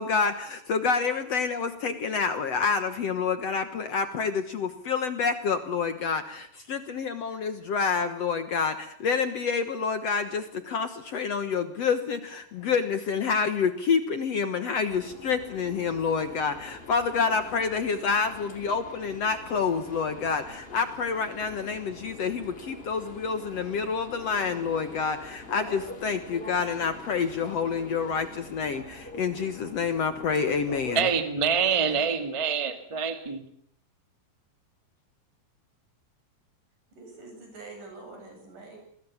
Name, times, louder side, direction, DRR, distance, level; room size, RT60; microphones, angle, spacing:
voice 1, 0.0-31.1, left 5 dB, 55° left, 2.0 m, -28 dB
sound 1, 14.9-31.2, left 2 dB, 20° left, 2.6 m, -45 dB
voice 2, 30.9-33.4, right 6 dB, 15° right, 1.0 m, -26 dB
voice 3, 36.9-38.8, right 3 dB, 65° right, 9.5 m, -45 dB
26.5 x 21.5 x 7.3 m
omnidirectional pair, 4.0 m